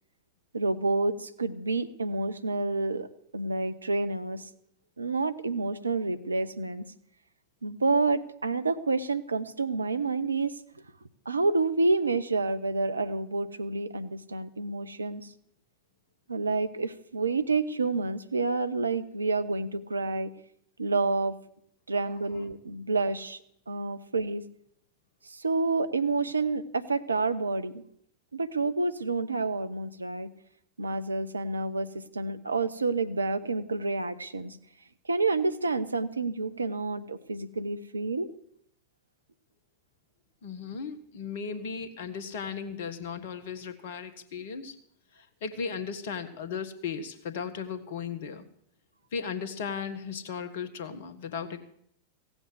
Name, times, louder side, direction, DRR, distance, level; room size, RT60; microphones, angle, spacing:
voice 1, 0.5-3.1 3.3-4.5 5.0-6.9 7.6-10.5 11.3-15.3 16.3-20.3 20.8-21.4 21.9-23.4 23.7-24.4 25.2-27.8 28.3-30.3 30.8-34.6 35.1-38.3, right 3 dB, 80° right, 11 dB, 0.7 m, -29 dB
voice 2, 40.4-44.7 45.1-48.5 49.1-51.6, left 6 dB, 55° left, 10 dB, 1.3 m, -36 dB
16.5 x 8.0 x 7.9 m, 0.68 s
figure-of-eight pair, 90°, 0 cm